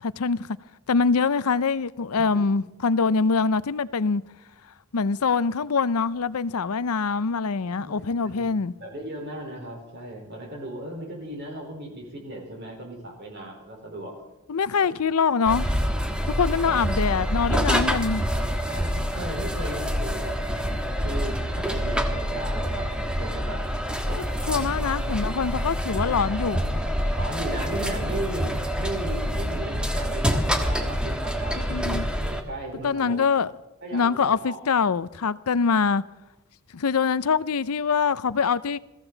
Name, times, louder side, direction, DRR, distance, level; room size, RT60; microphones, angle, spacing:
voice 1, 0.0-0.5 0.9-4.2 4.9-8.7 14.5-15.7 16.3-18.3 24.5-26.6 31.6-32.1 32.8-33.5 33.9-36.0 36.7-38.8, left 5 dB, 80° left, 0.6 m, -24 dB
voice 2, 7.7-8.5 8.8-14.2 14.7-14.9 16.7-16.8 18.7-20.7 21.0-22.9 23.2-23.6 24.1-24.8 27.1-33.2 33.8-34.6, right 1 dB, 50° right, 4.3 m, -36 dB
sound 1, 15.4-32.4, equal, 5° right, 1.3 m, -27 dB
22.0 x 15.0 x 4.0 m
head